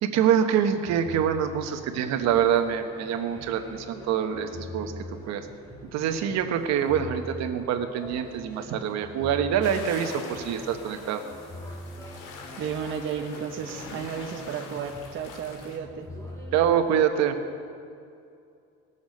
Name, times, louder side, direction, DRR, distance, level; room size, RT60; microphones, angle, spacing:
voice 1, 0.0-5.5 5.9-11.2 16.5-17.4, right 8 dB, 65° right, 7 dB, 1.1 m, -25 dB
sound 1, 0.7-17.0, left 1 dB, 10° left, 2.3 m, -43 dB
sound 2, 9.6-15.8, left 4 dB, 90° left, 2.0 m, -43 dB
voice 2, 12.6-16.1, right 7 dB, 45° right, 4 dB, 0.9 m, -33 dB
20.0 x 7.1 x 5.3 m, 2.4 s
cardioid pair, 130°, 29 cm